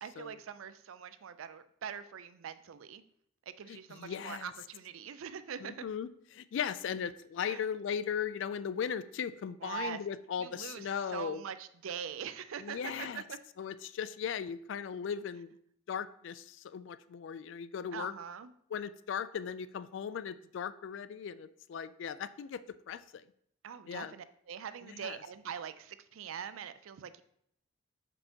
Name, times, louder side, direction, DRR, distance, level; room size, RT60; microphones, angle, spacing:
voice 1, 0.0-3.0 3.5-5.9 7.5-7.6 9.6-10.0 10.4-13.4 17.9-18.5 23.6-27.2, right 7 dB, 90° right, 13 dB, 0.4 m, -43 dB
voice 2, 3.7-4.5 5.6-11.4 12.6-13.2 13.6-15.5 15.9-18.1 18.7-22.6 22.9-23.2 23.9-24.1 24.8-25.2, left 7 dB, 70° left, 15 dB, 0.3 m, -38 dB
7.0 x 5.3 x 2.8 m, 0.68 s
head